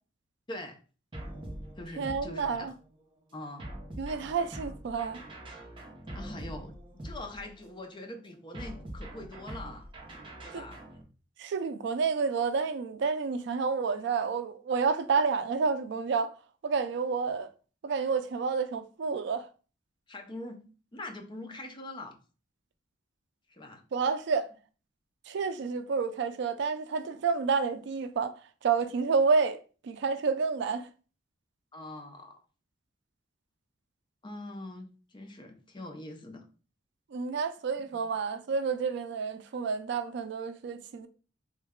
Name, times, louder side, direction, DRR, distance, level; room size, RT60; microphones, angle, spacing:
voice 1, 0.5-0.8 1.8-2.7 3.3-3.7 5.7-5.8 6.1-6.7 7.0-9.9 10.4-10.8 20.1-22.2 23.5-23.8 31.7-32.4 34.2-36.4 37.9-38.0, left 2 dB, 25° left, 0.5 m, -43 dB
sound 1, 1.1-2.9 3.6-7.8 8.5-11.0, right 1 dB, 30° right, 0.7 m, -44 dB
voice 2, 2.0-2.7 4.0-5.2 10.5-10.6 11.4-16.3 16.6-17.5 17.8-19.5 23.9-24.5 25.3-28.3 28.6-29.6 29.8-30.9 37.1-41.1, right 5 dB, 65° right, 0.3 m, -29 dB
3.1 x 2.2 x 3.5 m
head